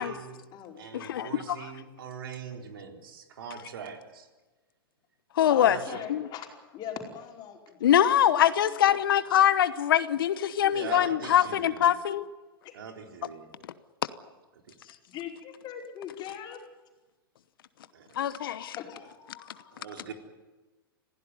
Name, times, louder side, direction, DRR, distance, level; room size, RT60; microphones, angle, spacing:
voice 1, 0.0-0.4 0.8-4.3 5.6-6.1 10.7-11.9 12.7-13.5 14.7-14.8 17.9-18.2 19.7-20.1, right 6 dB, 70° right, 4 dB, 4.0 m, -42 dB
voice 2, 0.9-1.3 5.4-5.8 6.1-6.3 7.8-12.3 18.1-18.8, left 10 dB, 70° left, 14 dB, 1.0 m, -23 dB
voice 3, 5.5-6.5 6.7-8.5 10.6-10.9 12.6-12.8 14.9-16.6 18.8-19.7, left 9 dB, 35° left, 2 dB, 5.0 m, -41 dB
26.0 x 16.5 x 9.5 m, 1.2 s
hypercardioid pair, 105°, 12 cm